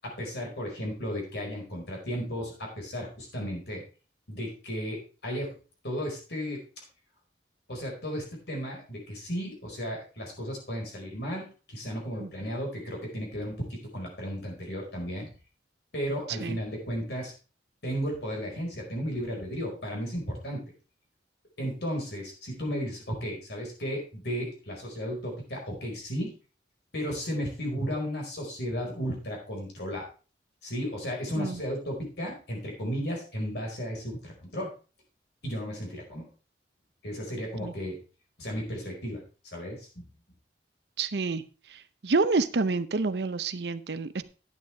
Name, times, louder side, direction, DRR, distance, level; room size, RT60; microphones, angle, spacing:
voice 1, 0.0-3.8 4.3-5.5 5.8-6.6 7.7-15.3 15.9-17.3 17.8-20.6 21.6-26.3 26.9-30.1 30.6-34.7 35.4-36.3 37.0-38.0 38.4-40.0, equal, 65° left, -1 dB, 4.8 m, -34 dB
voice 2, 41.0-41.4 42.0-44.2, right 3 dB, 65° right, 14 dB, 0.7 m, -28 dB
11.5 x 9.1 x 3.4 m, 0.34 s
head